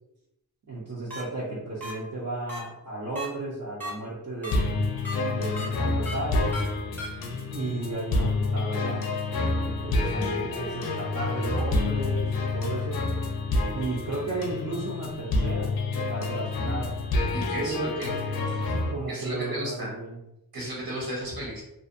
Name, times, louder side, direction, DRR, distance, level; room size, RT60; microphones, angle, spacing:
voice 1, 0.7-4.6 5.2-6.6 7.5-9.1 9.3-13.0 13.7-16.9 17.5-18.0 18.9-20.2, right 2 dB, 55° right, -6 dB, 0.6 m, -34 dB
sound 1, 1.1-1.2 1.8-1.9 2.5-2.6 3.2-3.3 3.8-3.9 4.4-4.5 5.0-5.2 5.6-5.7 6.1-6.2 6.5-6.6 7.0-7.1, equal, 5° left, 0.7 m, -35 dB
sound 2, 4.5-18.9, left 2 dB, 85° left, 0.5 m, -28 dB
voice 2, 17.3-18.1 18.5-18.8 19.1-19.9 20.5-21.6, equal, 80° right, -3 dB, 1.1 m, -34 dB
2.5 x 2.2 x 2.6 m, 0.84 s
wide cardioid pair, 125°, 36 cm